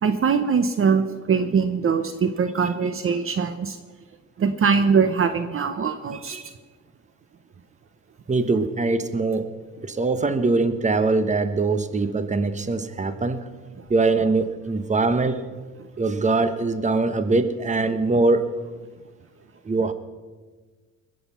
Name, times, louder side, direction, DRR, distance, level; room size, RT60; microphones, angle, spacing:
voice 1, 0.0-3.8 4.4-6.4, right 6 dB, 45° right, 10 dB, 0.9 m, -22 dB
voice 2, 8.3-9.4 9.8-13.5 13.9-15.4 16.0-18.5 19.6-19.9, right 3 dB, 25° right, 11 dB, 1.1 m, -22 dB
21.0 x 8.0 x 5.7 m, 1.4 s
cardioid pair, 90°, 30 cm